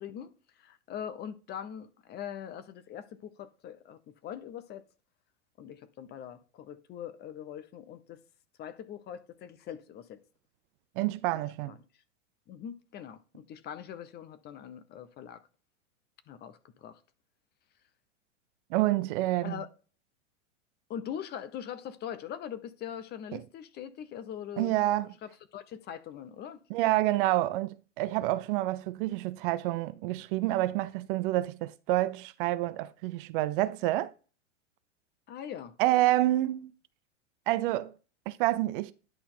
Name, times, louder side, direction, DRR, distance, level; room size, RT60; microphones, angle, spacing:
voice 1, 0.0-4.9 5.6-8.2 8.6-10.2 11.3-11.4 11.7-11.8 12.5-15.4 16.3-17.0 19.4-19.7 20.9-24.8 25.2-26.6 35.3-35.7, left 9 dB, 25° left, 0.6 m, -42 dB
voice 2, 11.0-11.8 18.7-19.6 23.3-23.4 24.6-25.1 26.7-34.1 35.8-36.7 37.5-37.9 38.3-38.9, right 16 dB, 45° right, 0.5 m, -28 dB
10.0 x 4.2 x 3.8 m
hypercardioid pair, 105°, 37 cm